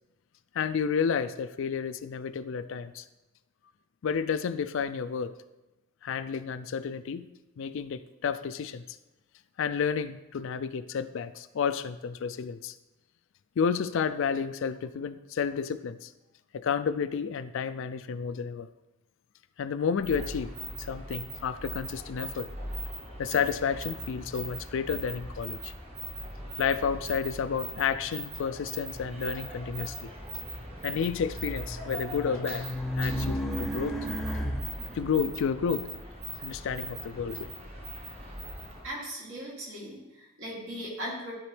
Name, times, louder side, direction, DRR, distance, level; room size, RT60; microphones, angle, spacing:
voice 1, 0.5-3.0 4.0-5.3 6.0-7.3 7.6-8.8 9.6-12.8 13.6-16.1 16.5-18.7 19.6-20.5 20.8-22.5 23.2-25.7 26.6-30.1 30.8-32.7 33.0-34.1 34.9-35.9 36.4-37.5, left 6 dB, 60° left, 0.4 m, -31 dB
sound 1, 20.0-38.9, right 1 dB, 30° right, 1.2 m, -40 dB
Race car auto racing, 30.7-35.0, equal, ahead, 0.5 m, -34 dB
voice 2, 38.8-41.3, equal, 65° right, 2.8 m, -38 dB
12.5 x 4.2 x 3.3 m
head